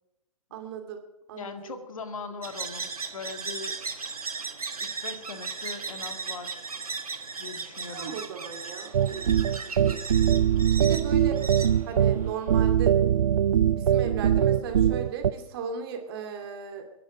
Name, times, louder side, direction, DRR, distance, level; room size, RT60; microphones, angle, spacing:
voice 1, 0.5-1.0 1.3-1.8 7.9-9.3 9.6-10.0 10.8-11.4 11.8-13.0 13.7-16.9, right 7 dB, 40° right, 4 dB, 2.5 m, -36 dB
voice 2, 1.3-3.8 4.8-6.7 7.4-8.2, left 4 dB, 65° left, 7 dB, 2.0 m, -40 dB
sound 1, 2.4-12.6, right 4 dB, 80° right, 1.3 m, -37 dB
sound 2, 8.9-15.3, right 9 dB, 60° right, 0.6 m, -22 dB
23.5 x 11.0 x 5.0 m, 0.92 s
figure-of-eight pair, 125°, 18 cm